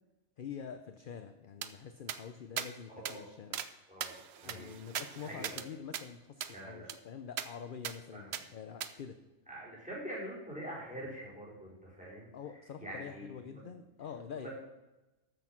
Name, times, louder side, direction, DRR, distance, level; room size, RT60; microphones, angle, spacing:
voice 1, 0.4-3.6 4.4-9.2 12.3-14.5, left 7 dB, 50° left, 8 dB, 0.7 m, -46 dB
sound 1, 1.6-1.7 2.1-2.2 2.6-2.7 3.1-3.2 3.5-3.7 4.0-5.7 5.9-6.0 6.4-6.5 6.9-7.0 7.4-7.5 7.8-8.0 8.3-8.4 8.8-8.9, right 9 dB, 60° right, 0.8 m, -39 dB
voice 2, 3.9-4.8 5.2-5.6 6.5-6.9 8.1-8.4 9.5-12.3 12.8-13.7 14.3-14.5, right 1 dB, 5° right, -5 dB, 4.3 m, -45 dB
13.5 x 6.4 x 5.8 m, 1.1 s
omnidirectional pair, 1.4 m